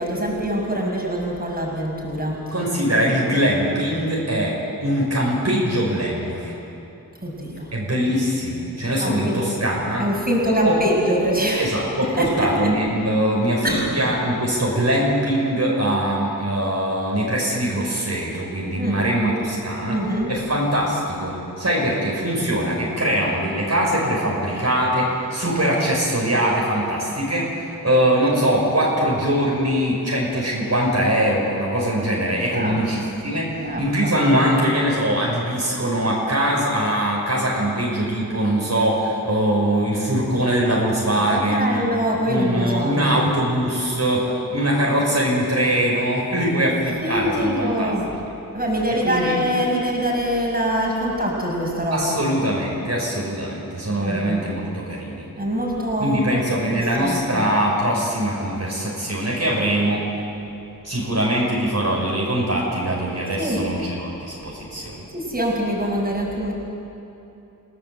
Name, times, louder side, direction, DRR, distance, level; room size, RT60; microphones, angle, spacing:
voice 1, 0.0-2.4 7.2-7.7 9.0-9.4 10.0-11.7 12.2-12.5 13.6-13.8 18.8-19.0 19.9-20.3 32.5-32.8 33.6-34.1 41.3-43.3 46.6-46.7 47.0-48.0 48.5-52.2 54.0-54.7 55.4-57.4 63.4-63.6 65.1-66.5, equal, 25° right, -2 dB, 6.2 m, -24 dB
voice 2, 2.5-6.5 7.7-10.1 10.6-10.8 11.5-20.0 20.3-33.5 33.8-41.8 42.3-48.0 49.0-49.4 51.9-55.3 56.0-60.1 60.8-65.0, right 1 dB, 50° right, -4 dB, 5.6 m, -22 dB
28.5 x 17.5 x 7.9 m, 2.9 s
wide cardioid pair, 75°, 35 cm